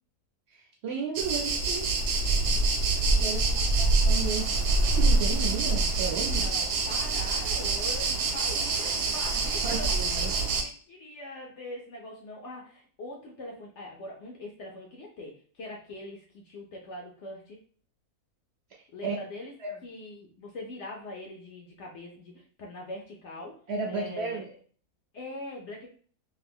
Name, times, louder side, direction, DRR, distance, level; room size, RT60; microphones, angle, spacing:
voice 1, 0.5-1.9 3.2-6.5 9.6-10.4 19.0-19.1 19.6-19.8 23.7-24.5, right 5 dB, 65° right, -1 dB, 0.6 m, -34 dB
sound 1, 1.2-10.6, right 3 dB, 90° right, 1.2 m, -26 dB
voice 2, 2.4-3.9 6.2-9.9 10.3-17.6 18.9-19.5 19.8-24.5 25.1-25.9, left 1 dB, 65° left, -1 dB, 0.7 m, -42 dB
2.7 x 2.5 x 3.4 m, 0.43 s
omnidirectional pair, 1.7 m